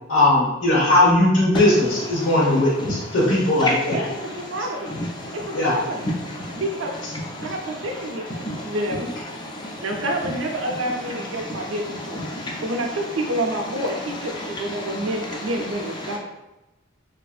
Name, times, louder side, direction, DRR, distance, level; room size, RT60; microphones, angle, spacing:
voice 1, 0.1-4.0 5.5-5.7, left 1 dB, 75° left, -5 dB, 1.0 m, -18 dB
voice 2, 3.9-4.9 5.3-6.0 6.5-6.9 7.4-9.1 9.8-16.2, right 1 dB, 80° right, 2 dB, 0.5 m, -28 dB
voice 3, 5.0-5.4 6.3-6.6 7.4-7.5 8.4-8.8 9.4-9.8 11.6-11.7 12.3-12.6 14.4-14.5 14.8-15.1 16.0-16.2, left 1 dB, 20° left, -1 dB, 0.4 m, -31 dB
2.8 x 2.5 x 2.3 m, 0.97 s
head